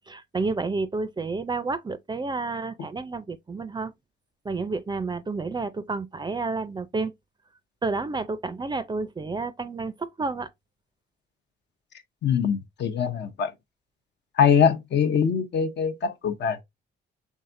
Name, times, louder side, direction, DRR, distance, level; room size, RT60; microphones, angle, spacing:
voice 1, 0.1-3.9 4.4-7.1 7.8-10.5, right 3 dB, 20° right, 0.4 m, -30 dB
voice 2, 12.2-13.5 14.4-16.6, left 7 dB, 60° left, 0.7 m, -23 dB
5.6 x 3.6 x 2.5 m
cardioid pair, 90°, 20 cm